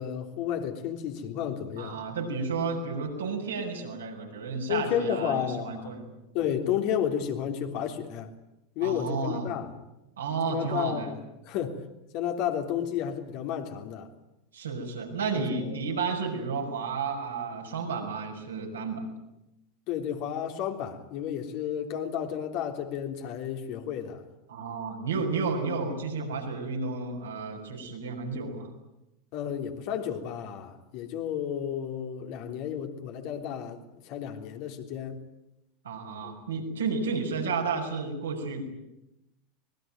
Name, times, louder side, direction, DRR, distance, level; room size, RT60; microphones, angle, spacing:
voice 1, 0.0-2.0 4.7-5.9 6.3-8.3 8.8-9.7 10.5-11.2 11.5-11.8 12.1-14.1 15.3-15.8 19.9-24.2 29.3-35.2 36.2-36.4, left 9 dB, 55° left, 3.5 m, -32 dB
voice 2, 1.8-6.1 8.8-9.5 10.2-11.1 14.5-19.1 24.5-28.7 35.8-38.6, right 4 dB, 75° right, 6.6 m, -32 dB
25.0 x 21.0 x 9.3 m
figure-of-eight pair, 80°, 0 cm